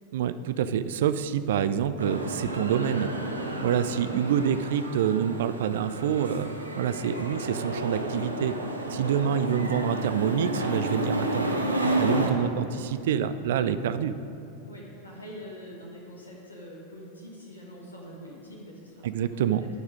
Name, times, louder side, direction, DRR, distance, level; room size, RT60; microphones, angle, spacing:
voice 1, 0.1-3.1 3.6-8.6 8.9-11.5 12.0-14.1 19.0-19.6, right 8 dB, 55° right, 13 dB, 0.4 m, -27 dB
sound 1, 2.0-12.3, right 1 dB, 80° right, 0.8 m, -31 dB
voice 2, 14.7-19.7, equal, 80° left, -3 dB, 1.6 m, -45 dB
14.0 x 4.8 x 5.1 m, 2.7 s
figure-of-eight pair, 90°, 0 cm